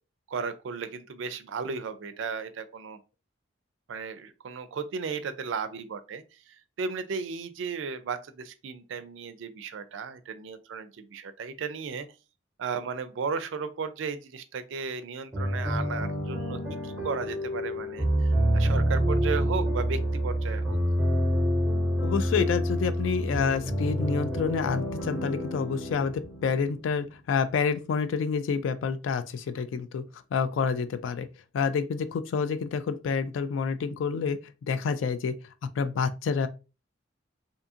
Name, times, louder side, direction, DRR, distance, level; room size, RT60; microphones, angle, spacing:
voice 1, 0.3-3.0 3.9-12.1 12.6-20.8, right 5 dB, 75° right, 0.4 m, -35 dB
sound 1, 15.3-27.0, equal, 10° right, 0.8 m, -27 dB
voice 2, 22.0-30.0 30.3-31.3 31.5-34.4 34.7-35.3 35.8-36.5, left 5 dB, 80° left, 0.3 m, -28 dB
2.6 x 2.4 x 2.6 m
head